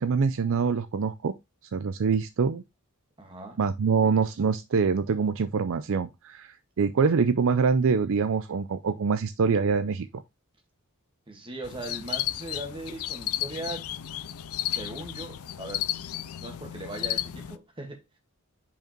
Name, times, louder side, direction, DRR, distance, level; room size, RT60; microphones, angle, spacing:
voice 1, 0.0-1.3 1.7-2.6 3.6-10.1, right 5 dB, 65° right, 0.5 m, -25 dB
voice 2, 3.2-3.6 11.3-13.9 14.7-18.2, right 2 dB, 25° right, 1.8 m, -39 dB
Crickets and Goldfinches, 11.6-17.6, left 13 dB, 70° left, 0.5 m, -33 dB
5.2 x 4.9 x 4.4 m
head